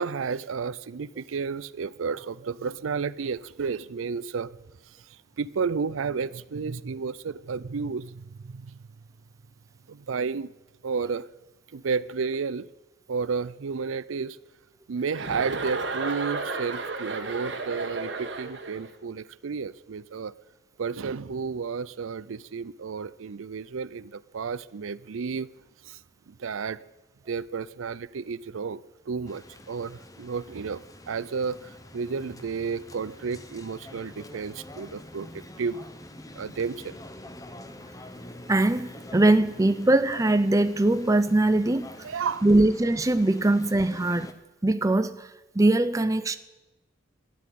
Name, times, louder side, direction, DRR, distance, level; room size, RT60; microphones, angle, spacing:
voice 1, 0.0-4.6 5.4-8.8 9.9-10.5 10.8-11.3 11.7-12.7 13.1-14.4 14.9-20.3 20.8-25.5 25.8-26.0 26.3-26.8 27.3-28.8 29.1-35.8 36.3-37.0 42.0-42.5, right 5 dB, 85° right, 0.5 m, -32 dB
Chuckle chortle, 15.1-18.9, right 3 dB, 60° right, 1.7 m, -33 dB
sound 1, 29.3-44.3, left 1 dB, 15° left, 0.9 m, -46 dB
voice 2, 38.5-41.9 42.4-44.3 44.6-45.3 45.5-46.4, right 2 dB, 15° right, 0.5 m, -21 dB
13.0 x 10.5 x 9.3 m
head